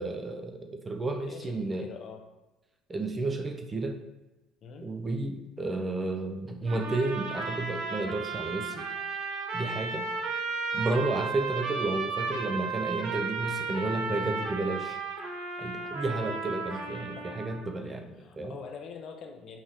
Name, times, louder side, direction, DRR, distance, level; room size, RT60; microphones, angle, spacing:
voice 1, 0.0-1.9 2.9-4.0 4.8-8.9 9.5-10.1 10.7-15.0 15.6-18.6, right 2 dB, 15° right, 5 dB, 0.4 m, -32 dB
voice 2, 1.3-2.2 4.6-4.9 10.7-11.0 16.7-17.3 17.8-19.6, left 5 dB, 40° left, 4 dB, 0.5 m, -45 dB
sound 1, 6.7-17.7, right 4 dB, 70° right, 0.7 m, -34 dB
5.6 x 3.1 x 2.8 m, 1.0 s
cardioid pair, 175°, 0 cm